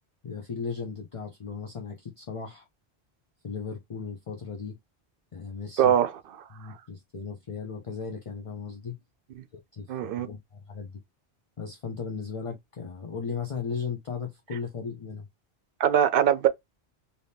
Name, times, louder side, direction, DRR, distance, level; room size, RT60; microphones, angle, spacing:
voice 1, 0.2-2.7 3.4-4.8 5.3-5.9 6.5-9.0 9.7-9.9 10.2-11.0 11.6-15.3, left 5 dB, 40° left, 0.5 m, -36 dB
voice 2, 5.8-6.1 9.9-10.3 15.8-16.5, right 9 dB, 65° right, 0.7 m, -21 dB
3.4 x 2.8 x 2.7 m
omnidirectional pair, 1.1 m